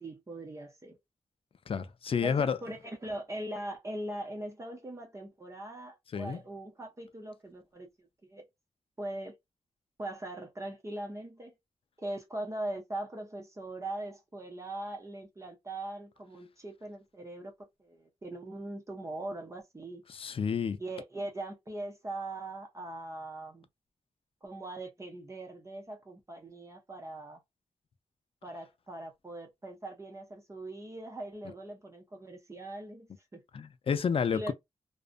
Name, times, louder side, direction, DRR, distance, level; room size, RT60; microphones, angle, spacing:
voice 1, 0.0-1.0 2.2-8.4 9.0-9.3 10.0-11.5 12.0-17.5 17.8-20.0 20.8-23.7 24.4-27.4 28.4-33.4 34.3-34.5, right 1 dB, 25° right, 0.6 m, -41 dB
voice 2, 1.7-2.6 6.1-6.4 20.1-20.8 33.5-34.5, left 6 dB, 50° left, 0.4 m, -30 dB
2.5 x 2.1 x 2.4 m
wide cardioid pair, 115°, 12 cm